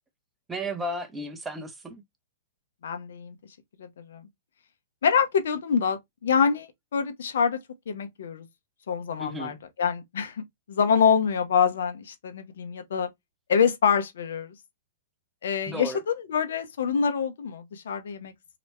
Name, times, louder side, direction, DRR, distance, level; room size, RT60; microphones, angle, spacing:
voice 1, 0.5-2.0 9.2-9.6 15.7-16.0, right 1 dB, 10° right, 0.9 m, -34 dB
voice 2, 2.8-3.4 3.8-4.3 5.0-7.6 7.9-8.5 8.9-13.1 13.5-14.5 15.4-18.3, left 6 dB, 70° left, 1.0 m, -26 dB
3.0 x 3.0 x 3.2 m
hypercardioid pair, 125°, 0 cm